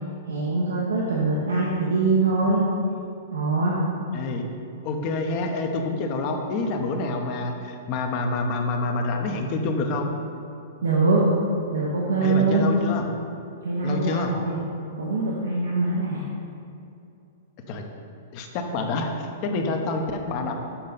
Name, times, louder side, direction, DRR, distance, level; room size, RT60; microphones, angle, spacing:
voice 1, 0.3-2.6 3.3-3.8 10.8-11.2 11.7-12.7 13.6-14.6 15.0-16.3, right 3 dB, 90° right, -4 dB, 0.9 m, -23 dB
voice 2, 4.1-4.4 4.8-10.1 12.2-13.1 13.8-14.3 17.7-17.8 18.3-20.6, left 3 dB, 45° left, 4 dB, 0.8 m, -27 dB
7.0 x 5.4 x 4.0 m, 2.6 s
hypercardioid pair, 120°, 0 cm